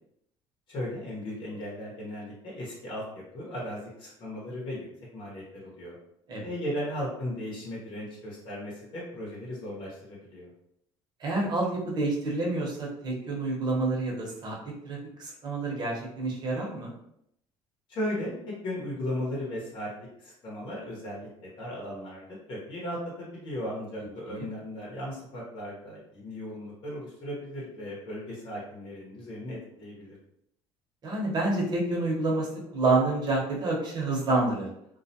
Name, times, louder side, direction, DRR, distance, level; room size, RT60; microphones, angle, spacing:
voice 1, 0.7-4.9 5.1-5.9 6.4-10.5 17.9-18.3 18.6-19.9 20.2-22.2 22.5-30.1, left 1 dB, 55° left, -4 dB, 0.9 m, -36 dB
voice 2, 11.2-14.6 14.8-16.9 24.3-24.4 31.0-34.7, right 2 dB, 45° right, -2 dB, 0.9 m, -28 dB
2.3 x 2.1 x 2.7 m, 0.75 s
cardioid pair, 105°, 10 cm